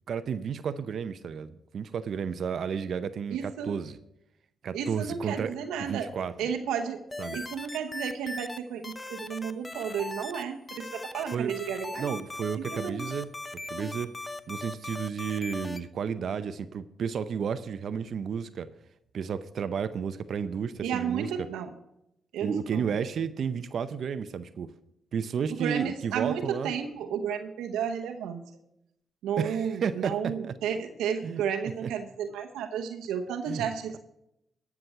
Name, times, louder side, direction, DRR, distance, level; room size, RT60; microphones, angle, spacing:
voice 1, 0.1-4.0 4.6-6.3 7.2-7.4 11.3-11.6 12.0-13.3 13.7-14.1 14.5-18.7 19.1-21.5 22.4-24.7 25.1-26.7 29.4-30.5 31.2-31.4 31.8-31.9 33.5-33.7, right 7 dB, 65° right, 13 dB, 0.6 m, -32 dB
voice 2, 3.3-3.7 4.7-7.0 7.3-12.2 12.6-13.0 20.8-21.7 22.3-22.9 25.5-28.4 29.2-34.0, right 7 dB, 85° right, 5 dB, 0.9 m, -32 dB
sound 1, 7.1-8.6 8.8-10.4 10.7-15.8, left 2 dB, 25° left, 0.9 m, -39 dB
13.0 x 6.1 x 6.7 m, 0.81 s
supercardioid pair, 50°, 0 cm